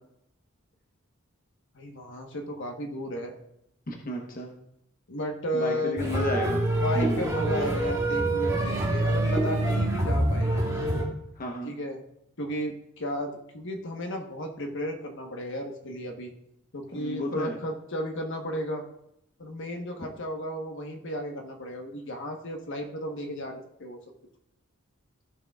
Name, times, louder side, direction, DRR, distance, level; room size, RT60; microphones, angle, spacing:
voice 1, 1.7-3.3 5.1-6.0 6.8-10.5 11.6-12.0 12.4-16.3 16.7-18.8 19.4-24.0, equal, 65° left, 3 dB, 1.2 m, -34 dB
voice 2, 3.9-4.5 5.5-6.7 6.9-7.2 11.4-11.8 16.9-17.6, left 1 dB, 45° left, 1 dB, 1.1 m, -32 dB
sound 1, 6.0-11.0, right 1 dB, 15° right, 2.3 m, -26 dB
15.0 x 6.5 x 2.4 m, 0.78 s
head